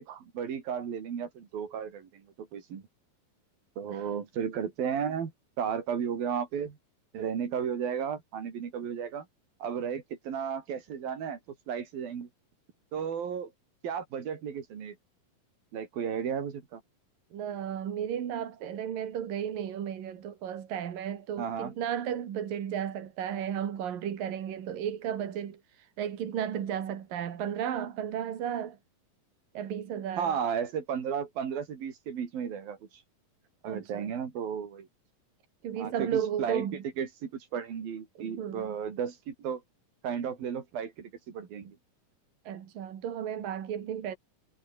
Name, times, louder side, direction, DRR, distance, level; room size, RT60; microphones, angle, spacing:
voice 1, 0.0-2.8 3.8-5.3 5.6-6.8 7.1-9.3 9.6-11.4 11.7-12.3 12.9-13.5 13.8-15.0 15.7-16.8 21.4-21.7 30.2-33.0 33.6-34.9 35.8-36.7 37.0-39.6 40.0-41.8, right 7 dB, 90° right, 5.1 m, -34 dB
voice 2, 17.3-25.6 26.0-28.8 29.6-30.3 33.6-34.1 35.6-36.8 38.2-38.7 42.5-44.2, right 9 dB, 75° right, 4.0 m, -34 dB
omnidirectional pair, 4.0 m